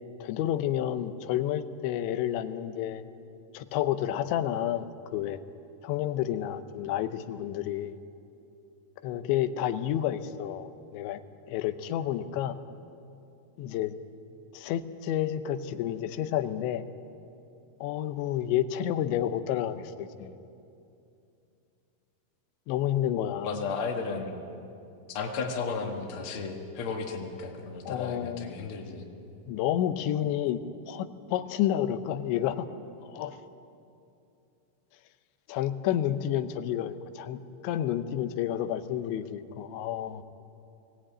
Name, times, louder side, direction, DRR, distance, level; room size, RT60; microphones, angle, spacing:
voice 1, 0.2-3.0 3.5-4.9 5.1-5.4 5.8-8.0 9.0-11.2 11.5-12.6 13.6-14.0 14.5-16.8 17.8-20.4 22.7-23.6 27.9-28.5 29.5-30.6 30.9-32.7 33.0-33.4 35.5-40.2, left 11 dB, 90° left, 10 dB, 3.1 m, -30 dB
voice 2, 23.4-24.3 25.1-29.1, left 4 dB, 50° left, 2 dB, 1.6 m, -34 dB
20.5 x 18.0 x 8.8 m, 2.6 s
omnidirectional pair, 5.1 m